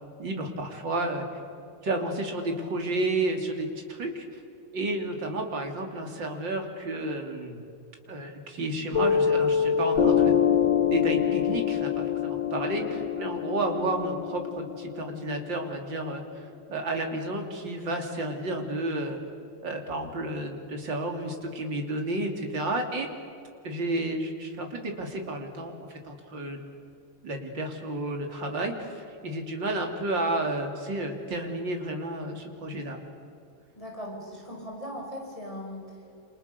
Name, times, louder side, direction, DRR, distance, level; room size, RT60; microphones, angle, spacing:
voice 1, 0.2-1.3 1.8-4.3 4.7-7.6 8.1-10.4 10.9-19.2 19.6-23.1 23.6-25.7 26.0-26.7 27.2-33.0, right 2 dB, 70° right, 3 dB, 3.7 m, -31 dB
Piano, 8.9-16.0, left 8 dB, 85° left, 1.9 m, -25 dB
voice 2, 33.7-36.2, equal, 15° left, -1 dB, 5.5 m, -39 dB
29.0 x 28.0 x 6.7 m, 2.5 s
omnidirectional pair, 2.1 m